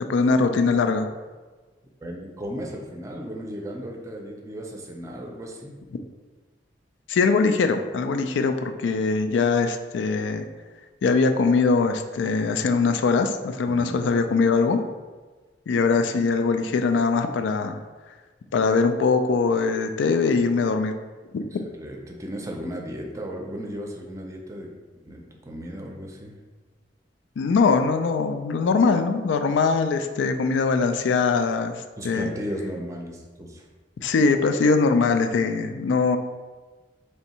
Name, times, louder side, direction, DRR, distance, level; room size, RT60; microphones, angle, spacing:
voice 1, 0.1-1.1 7.1-10.5 11.0-14.8 15.7-17.8 18.5-21.0 21.3-21.6 27.4-31.7 32.0-32.3 34.0-36.2, left 4 dB, 85° left, 7 dB, 0.3 m, -22 dB
voice 2, 2.0-5.7 13.6-14.0 21.6-24.7 25.0-26.4 32.0-33.6, equal, 15° right, 1 dB, 0.5 m, -35 dB
3.4 x 2.7 x 4.2 m, 1.3 s
head